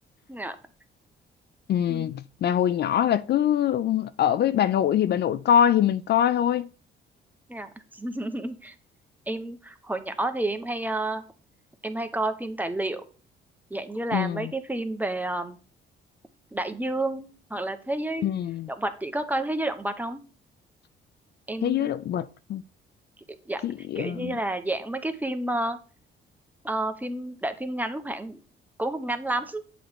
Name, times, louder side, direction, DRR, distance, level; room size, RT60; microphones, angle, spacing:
voice 1, 1.7-6.7 14.1-14.5 18.2-18.7 21.6-22.6 23.6-24.3, left 10 dB, 55° left, 0.4 m, -24 dB
voice 2, 7.5-8.7 9.3-11.2 11.8-13.0 13.7-15.6 16.5-18.3 18.7-20.2 21.5-21.9 23.5-23.6 23.9-25.8 26.6-28.4 28.8-29.6, right 1 dB, 10° right, 0.9 m, -30 dB
7.7 x 3.3 x 5.9 m
cardioid pair, 90°, 20 cm